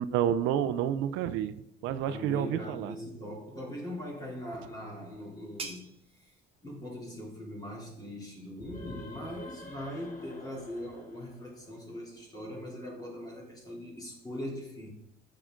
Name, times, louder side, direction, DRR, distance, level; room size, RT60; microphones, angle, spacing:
voice 1, 0.0-2.9, right 10 dB, 80° right, 12 dB, 0.6 m, -30 dB
voice 2, 2.0-6.4 6.6-14.9, left 1 dB, 20° left, -2 dB, 3.5 m, -41 dB
sound 1, 4.3-9.7, right 4 dB, 30° right, 1.5 m, -50 dB
sound 2, 8.5-12.1, left 1 dB, 45° left, 2.8 m, -49 dB
9.5 x 7.6 x 3.8 m, 0.77 s
cardioid pair, 150°, 20 cm